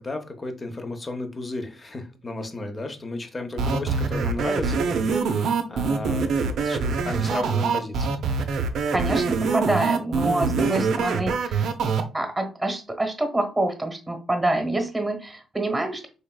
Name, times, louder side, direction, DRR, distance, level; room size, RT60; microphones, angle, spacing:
voice 1, 0.0-8.2 10.6-10.9, left 2 dB, 30° left, 6 dB, 0.7 m, -34 dB
sound 1, 3.6-12.0, right 5 dB, 70° right, 0.5 m, -24 dB
voice 2, 8.9-11.7 12.1-16.1, right 1 dB, 10° right, 5 dB, 1.1 m, -26 dB
4.2 x 3.3 x 2.2 m, 0.34 s
cardioid pair, 90°, 0 cm